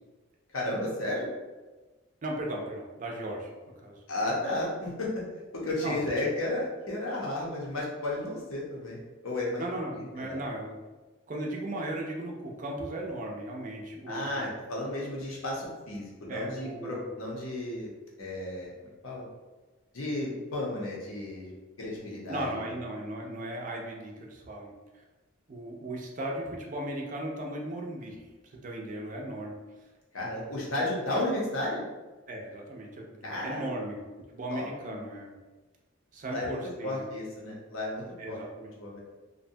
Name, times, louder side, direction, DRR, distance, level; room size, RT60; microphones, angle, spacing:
voice 1, 0.5-1.3 4.1-5.2 5.5-9.6 9.9-10.4 14.1-17.9 18.2-19.2 19.9-22.7 30.1-31.8 33.2-33.7 34.5-34.9 36.3-38.4 38.8-39.0, left 1 dB, 85° left, -3 dB, 0.7 m, -33 dB
voice 2, 2.2-3.5 3.8-4.0 5.8-6.0 9.6-10.7 11.3-14.4 16.3-17.1 22.3-25.0 25.5-29.5 30.8-30.9 32.3-34.0 34.3-35.3 36.1-37.1 38.2-38.7, right 1 dB, 40° right, 0 dB, 0.4 m, -37 dB
2.6 x 2.1 x 2.6 m, 1.2 s
head